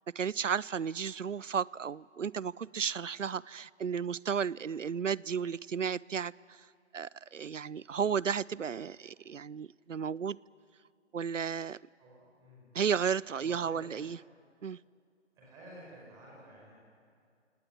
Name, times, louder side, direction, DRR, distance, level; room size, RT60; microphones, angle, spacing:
voice 1, 0.2-6.7 6.9-10.4 11.1-11.8 12.7-14.2 14.6-14.8, right 7 dB, 80° right, 0.6 m, -33 dB
voice 2, 12.0-12.7 13.4-14.0 15.4-16.7, right 1 dB, 10° right, 5.1 m, -52 dB
28.0 x 18.5 x 9.5 m
figure-of-eight pair, 150°, 37 cm